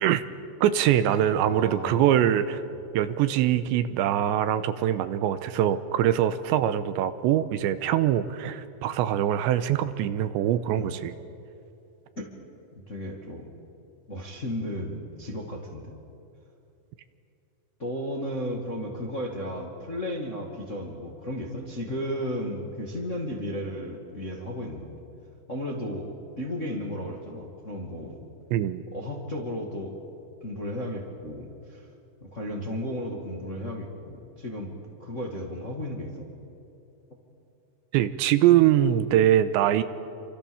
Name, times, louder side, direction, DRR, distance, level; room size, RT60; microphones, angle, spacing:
voice 1, 0.6-2.6 2.9-11.1 28.5-28.8 37.9-39.8, right 11 dB, 80° right, 12 dB, 3.0 m, -23 dB
voice 2, 1.4-2.2 2.7-2.8 10.8-10.9 12.1-12.2 12.9-13.5 14.1-16.0 17.8-24.9 25.5-28.3 28.9-30.0 30.4-31.9 32.2-36.3, equal, 30° left, 0 dB, 1.5 m, -34 dB
28.5 x 26.0 x 7.1 m, 2.7 s
omnidirectional pair, 5.3 m